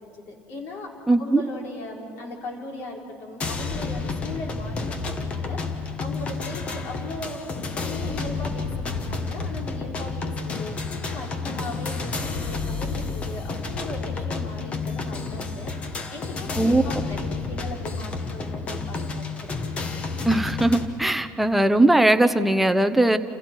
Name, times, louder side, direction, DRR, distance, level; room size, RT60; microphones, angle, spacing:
voice 1, 0.0-7.4 7.7-15.7 16.1-19.5, left 2 dB, 50° left, -1 dB, 4.3 m, -38 dB
voice 2, 1.1-1.4 16.6-16.8 20.2-23.2, right 1 dB, 5° right, 9 dB, 0.7 m, -19 dB
sound 1, 3.4-20.9, left 4 dB, 25° left, 1.3 m, -30 dB
29.0 x 28.5 x 4.6 m, 2.8 s
cardioid pair, 170°, 5 cm